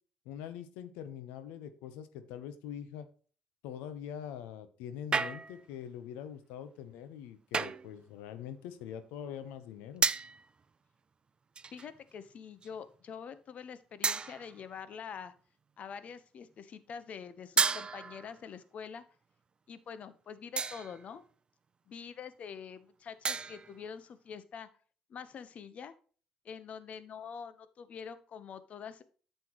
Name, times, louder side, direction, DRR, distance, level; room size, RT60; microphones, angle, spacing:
voice 1, 0.2-3.1 3.6-10.1, left 9 dB, 85° left, 11 dB, 1.0 m, -43 dB
sound 1, 5.1-5.7 7.5-7.9 10.0-10.5 11.6-12.0 12.6-12.8 14.0-14.6 17.6-18.4 20.6-21.1 23.3-23.8, right 5 dB, 35° right, 0.5 m, -32 dB
voice 2, 11.7-15.3 15.8-19.0 19.7-21.2 21.9-24.7 25.1-25.9 26.4-29.0, left 7 dB, 60° left, 13 dB, 1.0 m, -45 dB
9.7 x 6.8 x 3.1 m, 0.40 s
supercardioid pair, 60°, 3 cm